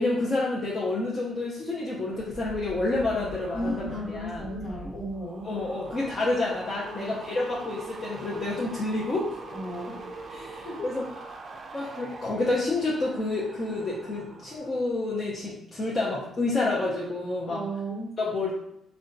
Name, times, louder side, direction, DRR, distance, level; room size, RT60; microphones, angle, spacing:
voice 1, 0.0-3.9 4.1-4.5 5.4-9.4 10.3-11.0 11.7-17.6 18.2-18.6, left 2 dB, 35° left, -5 dB, 0.6 m, -29 dB
sound 1, 2.1-14.8 15.1-15.5, right 3 dB, 45° right, 0.3 m, -43 dB
voice 2, 3.5-5.5 7.0-7.2 9.5-10.0 10.6-10.9 17.5-18.1, equal, 60° left, -4 dB, 1.2 m, -34 dB
3.6 x 2.2 x 2.6 m, 0.77 s
cardioid pair, 90°, 0 cm